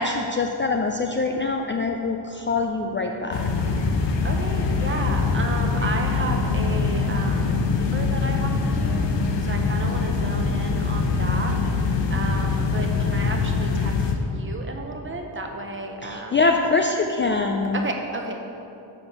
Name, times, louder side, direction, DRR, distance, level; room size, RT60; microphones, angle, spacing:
voice 1, 0.0-3.5 16.0-17.8, left 3 dB, 30° left, 3 dB, 0.4 m, -24 dB
sound 1, 3.3-14.1, left 4 dB, 70° left, 0.9 m, -23 dB
sound 2, 4.2-12.9, left 1 dB, 50° left, 1.3 m, -38 dB
voice 2, 4.2-9.1 9.4-11.6 12.1-13.9 14.2-16.4 17.7-18.4, right 2 dB, 25° right, 2 dB, 0.9 m, -32 dB
7.0 x 6.1 x 6.8 m, 2.8 s
wide cardioid pair, 140°, 45 cm